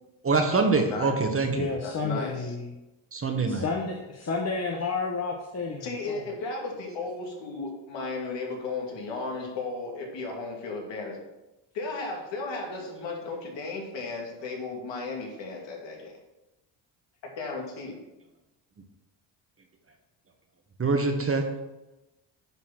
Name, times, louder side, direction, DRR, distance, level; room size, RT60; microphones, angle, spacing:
voice 1, 0.2-1.7 3.1-3.6 20.8-21.5, right 3 dB, 30° right, 4 dB, 1.4 m, -24 dB
voice 2, 0.8-1.2 1.8-2.5 5.8-11.2 11.7-16.1 17.2-18.0, left 3 dB, 70° left, 0 dB, 2.4 m, -35 dB
voice 3, 1.5-2.7 3.6-6.2, left 4 dB, 35° left, 0 dB, 1.2 m, -31 dB
9.8 x 4.2 x 6.0 m, 1.0 s
supercardioid pair, 75°, 46 cm